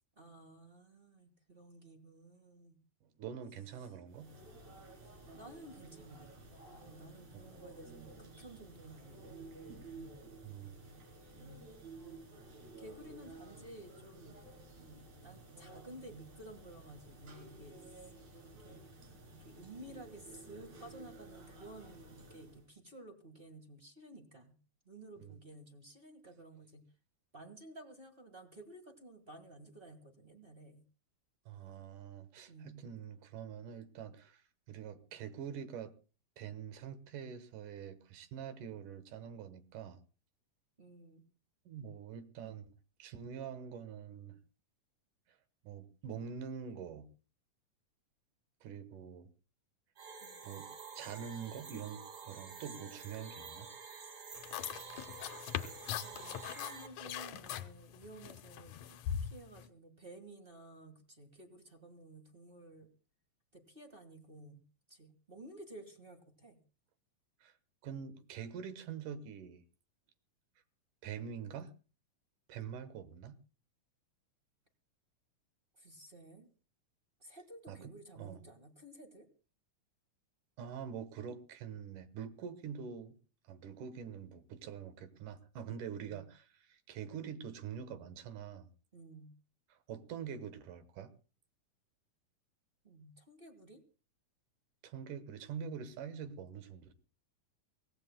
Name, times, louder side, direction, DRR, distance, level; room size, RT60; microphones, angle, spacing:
voice 1, 0.2-2.8 5.0-6.3 6.8-9.5 9.9-10.3 11.3-11.6 12.8-14.4 14.8-17.9 18.6-18.8 19.4-24.5 24.8-26.8 27.3-30.8 32.5-32.8 40.8-41.2 50.2-50.4 52.5-52.7 54.6-55.0 55.7-62.9 63.5-64.6 64.9-66.6 75.8-76.5 77.2-79.3 88.9-89.3 92.8-93.8, right 1 dB, 25° right, 6 dB, 1.3 m, -54 dB
voice 2, 3.0-4.3 7.3-7.5 10.4-11.3 25.2-25.4 31.5-35.9 36.4-40.0 41.7-42.7 43.0-44.4 45.6-47.1 48.6-49.3 50.4-50.7 51.0-53.7 67.4-67.5 67.8-69.6 71.0-71.7 72.5-73.4 77.7-78.4 80.6-83.2 83.5-88.7 89.7-91.1 94.8-96.9, right 7 dB, 85° right, 12 dB, 2.8 m, -45 dB
sound 1, 4.1-22.7, right 2 dB, 65° right, 4.8 m, -54 dB
sound 2, 50.0-56.9, right 5 dB, 40° right, 1.5 m, -49 dB
sound 3, 54.3-59.7, left 10 dB, 70° left, 2.0 m, -41 dB
23.5 x 17.5 x 2.2 m, 0.35 s
omnidirectional pair, 3.6 m